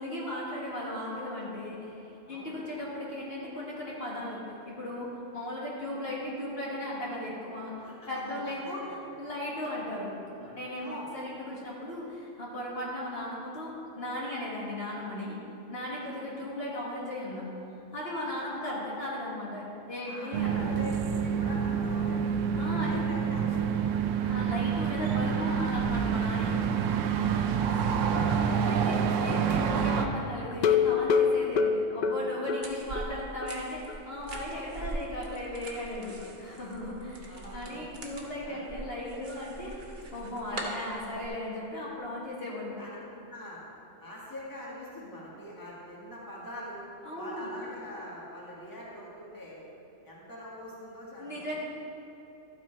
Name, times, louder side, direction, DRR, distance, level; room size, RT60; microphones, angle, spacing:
voice 1, 0.0-7.7 8.1-8.8 9.2-15.4 15.7-17.5 17.9-20.8 22.6-23.0 24.2-26.7 28.1-39.7 40.1-42.8 47.0-47.5 51.2-51.6, left 1 dB, 50° left, -6 dB, 1.7 m, -37 dB
voice 2, 7.8-8.9 10.8-11.1 16.0-16.2 20.0-20.9 21.2-22.3 22.8-24.1 27.2-27.8 28.0-28.6 36.3-36.6 37.3-38.0 38.4-38.6 42.8-43.0 43.3-43.6 44.0-46.9 47.2-49.6 50.0-51.3, left 1 dB, 15° left, -6 dB, 1.7 m, -44 dB
sound 1, 20.3-30.1, right 7 dB, 85° right, 1.0 m, -27 dB
sound 2, 30.5-33.1 33.4-33.5 33.9-34.0 34.4-34.5, left 6 dB, 80° left, 0.4 m, -25 dB
sound 3, 32.6-41.3, right 2 dB, 45° right, 1.1 m, -42 dB
12.5 x 6.0 x 4.4 m, 3.0 s
omnidirectional pair, 1.3 m